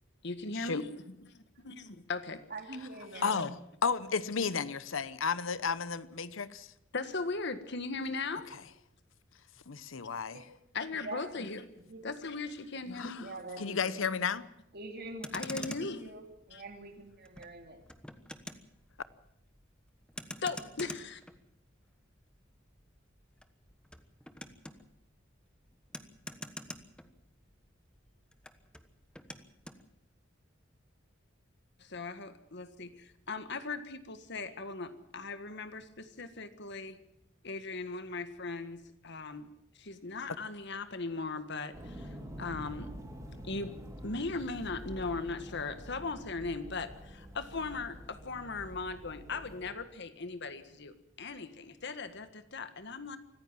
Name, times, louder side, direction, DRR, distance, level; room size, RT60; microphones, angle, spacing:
voice 1, 0.2-2.4 3.1-3.4 6.9-8.5 10.7-11.6 12.0-13.3 15.3-16.1 16.5-16.6 20.4-21.2 31.8-37.0 37.4-39.5 39.8-42.9 43.4-43.7 44.0-53.2, left 3 dB, 60° left, 11 dB, 1.7 m, -38 dB
voice 2, 2.5-3.6 10.3-10.4 11.0-11.3 11.7-12.1 13.2-14.0 14.7-17.8, right 2 dB, 55° right, 5 dB, 3.1 m, -45 dB
voice 3, 3.2-6.7 9.7-10.4 13.0-13.2 13.6-14.5, left 5 dB, 80° left, 16 dB, 0.9 m, -33 dB
Motor vehicle (road), 15.0-27.7 27.9-29.8, left 1 dB, 5° left, 1.2 m, -47 dB
sound 1, 41.7-49.7, equal, 15° right, 4.8 m, -47 dB
25.0 x 15.0 x 7.5 m, 0.83 s
head